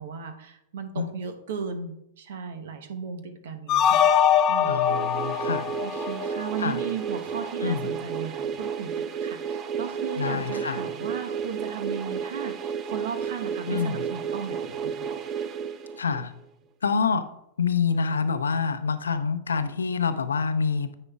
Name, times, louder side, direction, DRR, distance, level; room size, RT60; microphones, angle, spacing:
voice 1, 0.0-4.1 4.5-4.8 5.2-5.5 5.8-15.0, right 6 dB, 60° right, 7 dB, 1.0 m, -36 dB
sound 1, 3.7-6.8, left 8 dB, 35° left, 0.6 m, -23 dB
sound 2, 4.6-16.4, right 7 dB, 30° right, 0.7 m, -32 dB
voice 2, 4.7-5.7 6.6-6.8 7.6-7.9 10.2-10.8 13.7-14.0 16.0-16.3 16.8-17.3 17.6-20.9, left 5 dB, 75° left, 11 dB, 0.6 m, -26 dB
9.7 x 9.0 x 2.4 m, 0.77 s
figure-of-eight pair, 95°, 0 cm